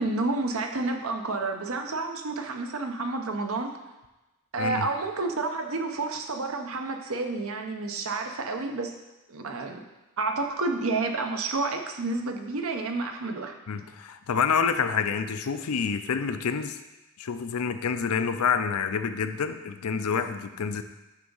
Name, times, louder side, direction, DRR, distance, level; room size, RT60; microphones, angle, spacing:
voice 1, 0.0-3.7 4.5-9.0 9.3-9.8 10.2-13.5, right 3 dB, 70° right, 5 dB, 0.8 m, -30 dB
voice 2, 13.7-16.8 17.2-20.8, left 6 dB, 85° left, 9 dB, 0.5 m, -28 dB
9.2 x 3.5 x 5.5 m, 1.1 s
head